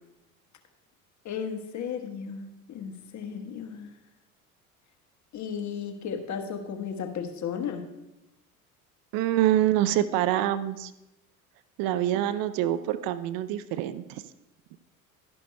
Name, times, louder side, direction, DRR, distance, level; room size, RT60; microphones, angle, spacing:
voice 1, 1.2-3.9 5.3-7.8, left 7 dB, 40° left, 5 dB, 1.3 m, -34 dB
voice 2, 9.1-10.9 11.8-14.2, right 12 dB, 55° right, 13 dB, 0.6 m, -26 dB
12.0 x 10.5 x 2.2 m, 0.94 s
hypercardioid pair, 65°, 43 cm